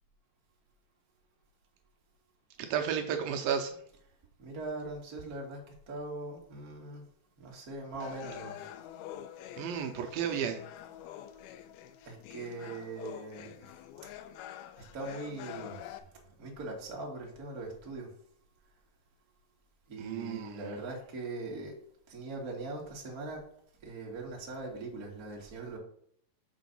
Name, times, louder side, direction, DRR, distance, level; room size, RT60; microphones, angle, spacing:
voice 1, 2.6-3.8 9.6-10.6 20.0-20.6, right 8 dB, 80° right, 2.4 m, -33 dB
voice 2, 4.4-5.6 5.9-7.0 7.4-8.6 11.1-11.2 12.0-13.8 14.8-18.1 19.9-21.7 22.1-23.4 23.8-25.8, right 2 dB, 30° right, 1.8 m, -41 dB
sound 1, 8.0-16.0, left 11 dB, 90° left, 2.5 m, -46 dB
7.0 x 5.0 x 5.4 m
omnidirectional pair, 4.3 m